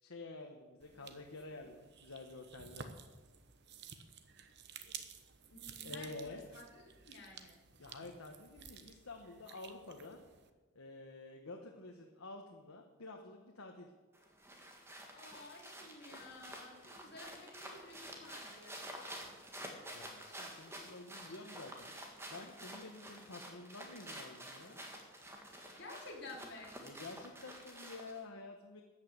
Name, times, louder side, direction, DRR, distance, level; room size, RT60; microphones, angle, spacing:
voice 1, 0.0-3.0 5.8-6.5 7.8-10.2 10.7-13.9 19.9-21.9 22.3-24.8 26.8-28.8, left 2 dB, 80° left, 2 dB, 1.4 m, -50 dB
sound 1, 0.8-10.5, right 7 dB, 50° right, 1.0 m, -53 dB
voice 2, 5.3-7.6 15.1-19.1 25.7-26.8, left 2 dB, 50° left, -1 dB, 3.4 m, -53 dB
sound 2, 14.1-28.2, right 1 dB, 10° right, 1.8 m, -50 dB
13.5 x 9.0 x 8.1 m, 1.3 s
head